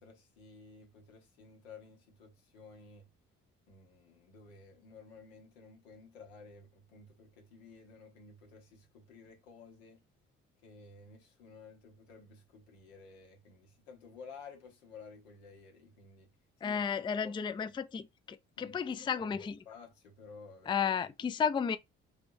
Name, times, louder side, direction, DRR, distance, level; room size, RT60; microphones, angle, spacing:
voice 1, 0.0-3.1 3.7-10.0 10.6-16.3 16.6-16.8 17.2-17.8 18.6-19.3 19.6-20.8, left 4 dB, 90° left, 1.3 m, -54 dB
voice 2, 16.6-19.5 20.7-21.8, left 7 dB, 15° left, 0.4 m, -33 dB
3.5 x 3.4 x 2.6 m
hypercardioid pair, 55°, 31 cm